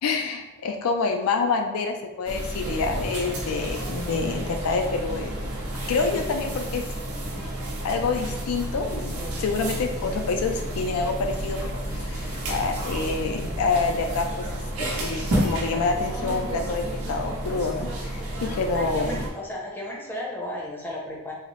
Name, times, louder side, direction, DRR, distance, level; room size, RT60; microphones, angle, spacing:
voice 1, 0.0-5.3 5.9-6.8 7.8-14.4 14.9-19.2, left 4 dB, 70° left, 4 dB, 0.4 m, -27 dB
sound 1, 2.3-19.3, right 1 dB, 75° right, 0.8 m, -31 dB
voice 2, 18.7-21.3, left 1 dB, 10° left, -4 dB, 0.6 m, -34 dB
3.9 x 2.0 x 3.0 m, 1.1 s
head